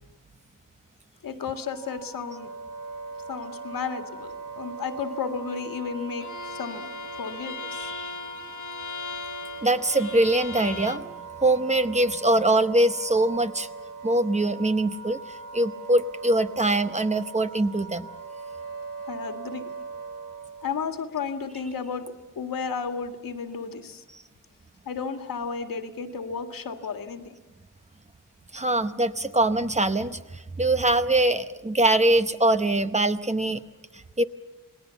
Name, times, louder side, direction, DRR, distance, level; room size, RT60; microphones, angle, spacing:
voice 1, 1.2-2.5 3.3-6.9 7.2-7.9 19.1-19.7 20.6-24.0 24.9-27.3, left 5 dB, 90° left, 6 dB, 2.0 m, -33 dB
Wind instrument woodwind instrument, 1.7-20.8, right 5 dB, 90° right, 2.5 m, -41 dB
Bowed string instrument, 6.2-11.1, left 5 dB, 60° left, 1.3 m, -38 dB
voice 2, 7.8-8.1 9.6-11.1 11.4-13.7 14.0-18.1 28.5-33.6 34.2-34.3, right 1 dB, 20° right, 10 dB, 0.8 m, -23 dB
28.5 x 20.0 x 7.1 m, 1.2 s
wide cardioid pair, 150°, 33 cm